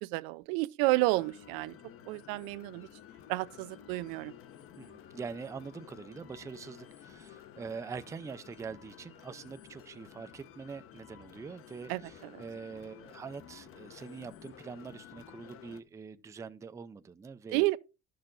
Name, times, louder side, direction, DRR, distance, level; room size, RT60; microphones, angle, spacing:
voice 1, 0.0-1.7 2.1-2.9 3.3-4.3 11.9-12.4 17.5-17.8, right 21 dB, 90° right, 0.6 m, -31 dB
sound 1, 0.8-15.8, left 10 dB, 40° left, 0.8 m, -53 dB
voice 2, 4.8-17.6, right 5 dB, 10° right, 0.4 m, -44 dB
12.0 x 6.6 x 3.8 m
cardioid pair, 150°, 34 cm